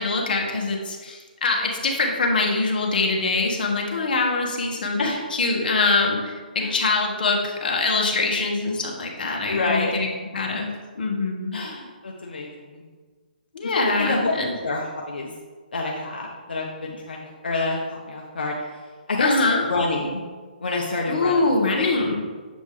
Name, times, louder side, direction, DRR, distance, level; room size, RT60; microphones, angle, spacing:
voice 1, 0.0-5.0 5.3-10.1 10.3-10.7 10.9-11.6 13.5-14.5 19.2-19.6 21.1-22.2, left 3 dB, 65° left, 0 dB, 1.4 m, -23 dB
voice 2, 9.4-9.9 11.5-12.8 13.6-14.3 14.6-15.3 15.7-18.5 19.1-19.3 19.7-20.2 20.6-21.8, left 3 dB, 90° left, -2 dB, 1.0 m, -27 dB
7.5 x 5.2 x 3.3 m, 1.5 s
hypercardioid pair, 150°, 5 cm